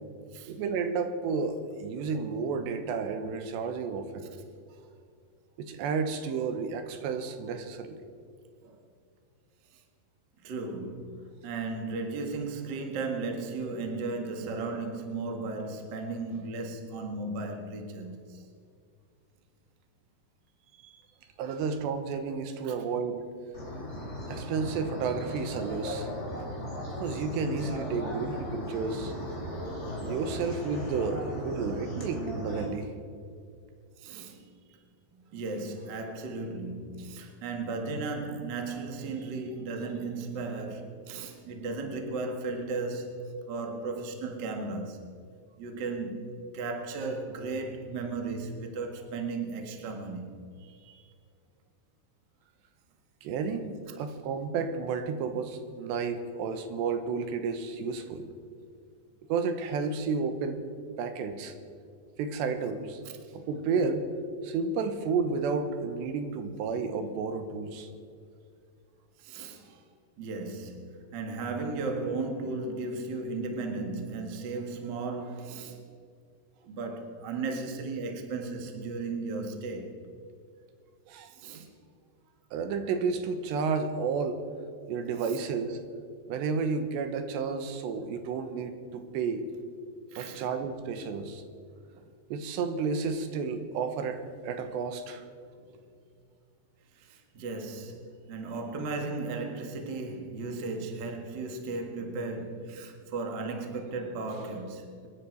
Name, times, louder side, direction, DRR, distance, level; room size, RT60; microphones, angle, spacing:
voice 1, 0.5-4.3 5.6-8.0 21.4-23.2 24.3-26.1 27.0-29.1 30.0-32.9 53.2-58.3 59.3-60.6 61.0-61.5 62.2-63.0 63.3-64.0 64.4-67.9 81.1-81.7 82.5-84.4 84.9-85.8 86.3-89.4 90.2-91.4 92.3-95.2, right 5 dB, 85° right, 3.3 m, -31 dB
voice 2, 10.4-18.5 20.8-21.0 22.6-22.7 34.0-34.4 35.3-45.1 45.6-50.3 50.6-51.1 53.9-54.2 63.3-63.4 69.2-69.8 70.2-75.8 76.7-80.1 81.3-81.7 85.2-85.4 90.1-90.5 95.6-95.8 96.9-105.1, right 3 dB, 65° right, 1.0 m, -35 dB
sound 1, 23.5-32.6, equal, 15° left, 3.3 m, -37 dB
25.5 x 10.5 x 4.6 m
omnidirectional pair, 4.9 m